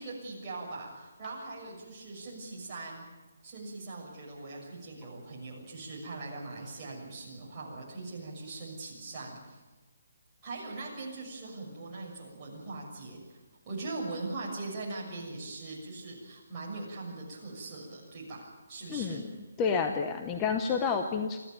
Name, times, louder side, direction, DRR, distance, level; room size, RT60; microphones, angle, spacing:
voice 1, 0.0-3.0 3.4-9.6 10.4-13.4 13.6-19.2 19.7-19.8, right 3 dB, 15° right, -7 dB, 6.6 m, -41 dB
voice 2, 18.9-19.3 19.6-21.4, left 5 dB, 10° left, 5 dB, 0.7 m, -29 dB
25.0 x 14.5 x 9.3 m, 1.3 s
hypercardioid pair, 180°, 0 cm